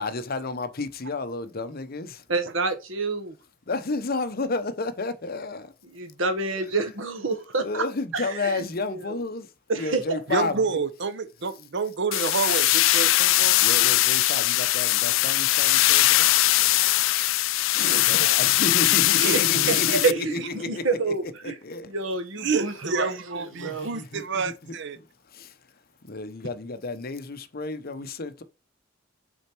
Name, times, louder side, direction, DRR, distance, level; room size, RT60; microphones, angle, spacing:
voice 1, 0.0-2.2 3.7-5.7 6.6-6.7 7.6-9.5 9.8-10.6 13.6-16.3 18.0-21.9 23.5-24.8 25.3-25.5 26.1-28.4, left 3 dB, 50° left, 0.8 m, -31 dB
voice 2, 2.3-3.3 5.9-7.8 8.1-9.2 9.7-10.2 17.7-18.1 19.3-19.4 19.7-21.6 21.9-23.9, right 3 dB, 80° right, 1.4 m, -28 dB
voice 3, 10.3-13.6 17.9-18.3 19.1-19.8 22.4-25.0, right 4 dB, 60° right, 0.7 m, -29 dB
sound 1, 12.1-20.1, left 16 dB, 75° left, 0.4 m, -21 dB
6.5 x 4.4 x 4.5 m
head